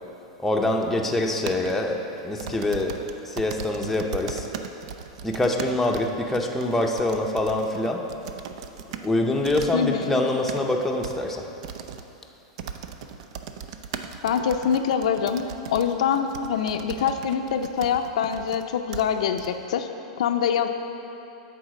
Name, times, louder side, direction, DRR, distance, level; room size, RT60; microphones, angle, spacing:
voice 1, 0.4-2.9 3.2-4.5 5.2-8.0 9.0-11.4, left 2 dB, 5° left, 0 dB, 0.6 m, -25 dB
sound 1, 1.5-1.7 2.4-9.1 9.4-9.8 10.2-10.6 11.0-11.2 11.6-12.0 12.6-18.6 18.9-19.0 19.4-19.5, right 7 dB, 65° right, 0.5 m, -37 dB
voice 2, 9.7-10.2 14.2-15.4 15.7-19.9 20.2-20.7, left 7 dB, 80° left, 6 dB, 0.5 m, -24 dB
8.7 x 4.1 x 6.4 m, 2.8 s
supercardioid pair, 135°, 4 cm